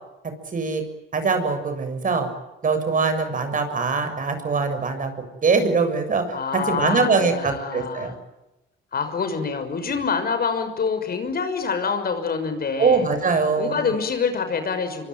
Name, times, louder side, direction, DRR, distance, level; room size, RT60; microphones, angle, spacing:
voice 1, 0.5-0.8 1.1-2.3 2.6-5.1 5.4-6.2 6.7-8.1 12.8-13.9, right 4 dB, 40° right, 8 dB, 7.2 m, -22 dB
voice 2, 6.3-8.1 8.9-13.1 13.6-15.1, left 5 dB, 50° left, 9 dB, 6.2 m, -26 dB
26.0 x 24.0 x 9.4 m, 0.95 s
cardioid pair, 90°, 20 cm